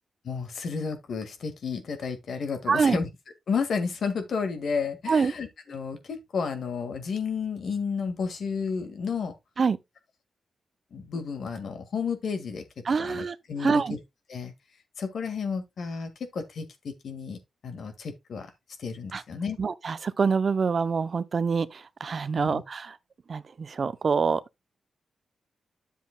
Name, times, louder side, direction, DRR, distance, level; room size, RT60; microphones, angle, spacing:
voice 1, 0.3-3.1 3.5-9.3 10.9-12.6 13.0-14.0 14.3-14.5 15.0-18.5 18.8-19.6 22.4-22.6, left 5 dB, 70° left, 1.8 m, -32 dB
voice 2, 2.7-3.0 5.1-5.3 9.6-9.8 12.9-13.4 13.6-14.0 19.1-19.2 19.6-22.9 23.3-24.4, right 5 dB, 55° right, 0.6 m, -25 dB
10.5 x 7.3 x 2.2 m
cardioid pair, 60°, 0 cm